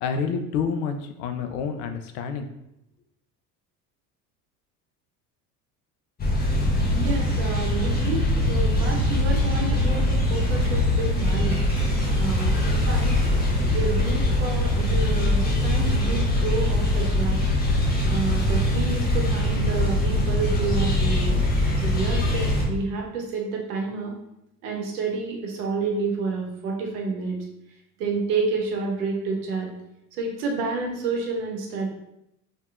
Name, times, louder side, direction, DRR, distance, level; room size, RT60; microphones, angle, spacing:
voice 1, 0.0-2.5, left 6 dB, 65° left, 7 dB, 0.5 m, -28 dB
sound 1, 6.2-22.6, left 1 dB, 20° left, 0.7 m, -22 dB
voice 2, 6.9-11.6 12.1-13.2 13.7-17.4 18.1-21.4 21.8-24.1 24.6-27.4 28.0-29.7 30.1-31.9, right 4 dB, 70° right, 0 dB, 0.8 m, -29 dB
sound 2, 9.2-14.4, right 1 dB, 15° right, 1.0 m, -41 dB
2.8 x 2.6 x 2.4 m, 0.84 s
hypercardioid pair, 70°, 48 cm